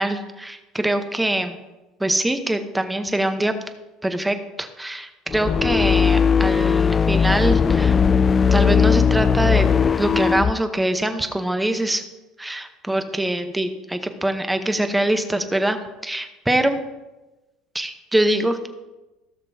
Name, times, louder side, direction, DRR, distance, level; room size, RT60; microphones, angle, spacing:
voice 1, 0.0-1.6 2.0-3.5 4.0-8.0 8.5-9.7 10.0-12.0 12.4-15.8 16.0-16.8 17.7-18.7, right 1 dB, 5° right, 7 dB, 0.9 m, -23 dB
sound 1, 5.3-10.5, left 6 dB, 30° left, 0.3 m, -18 dB
16.5 x 6.6 x 2.8 m, 1.1 s
supercardioid pair, 105°, 0 cm